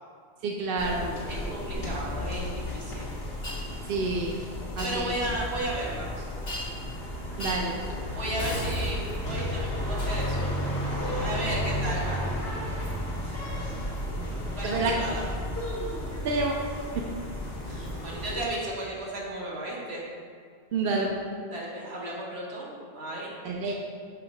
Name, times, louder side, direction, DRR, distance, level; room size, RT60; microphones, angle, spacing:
voice 1, 0.4-1.1 2.2-2.3 3.9-4.4 4.8-5.0 7.4-7.7 14.6-14.9 16.2-16.5 16.9-17.0 20.7-21.1 23.4-23.8, right 3 dB, 65° right, 0 dB, 0.8 m, -28 dB
sound 1, 0.8-18.4, left 1 dB, 70° left, 1.3 m, -33 dB
voice 2, 1.3-3.1 4.8-6.2 8.1-10.6 11.1-12.2 14.5-15.2 17.6-20.0 21.5-23.3, right 1 dB, 80° right, -4 dB, 1.6 m, -34 dB
Shatter, 3.4-3.6 4.8-5.0 6.5-6.9 7.4-7.7 8.4-9.2 10.0-10.4 12.8-13.0 13.9-14.1 14.9-15.0 17.9-18.0 19.0-19.1, equal, 45° left, 1.5 m, -38 dB
sound 2, 10.5-15.6, right 1 dB, 30° left, 1.0 m, -42 dB
5.6 x 3.9 x 5.3 m, 2.1 s
omnidirectional pair, 1.1 m